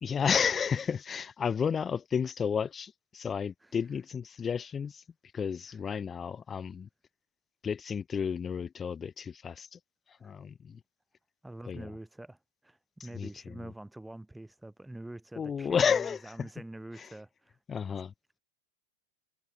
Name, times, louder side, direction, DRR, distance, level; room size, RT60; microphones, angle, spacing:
voice 1, 0.0-5.0 5.3-6.9 7.6-9.8 10.2-10.8 11.7-11.9 13.1-13.6 15.4-16.5 17.0-17.1 17.7-18.1, left 7 dB, 20° left, 0.5 m, -32 dB
voice 2, 11.4-17.6 17.9-18.0, right 1 dB, 5° right, 4.8 m, -46 dB
figure-of-eight pair, 90°, 0 cm